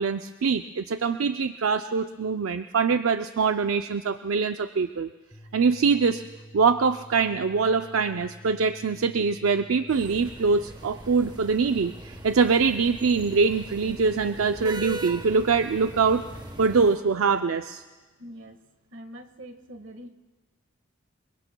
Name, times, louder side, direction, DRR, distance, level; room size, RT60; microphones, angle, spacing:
voice 1, 0.0-5.1 5.5-6.2 6.5-16.2 16.6-17.8, right 5 dB, 90° right, 8 dB, 0.5 m, -23 dB
sound 1, 5.3-16.7, equal, 20° left, 1.4 m, -48 dB
sound 2, 9.9-17.0, right 1 dB, 20° right, 1.1 m, -41 dB
voice 2, 18.2-18.6 18.9-20.1, equal, 65° right, 6 dB, 1.6 m, -43 dB
27.5 x 22.5 x 2.3 m, 1.2 s
head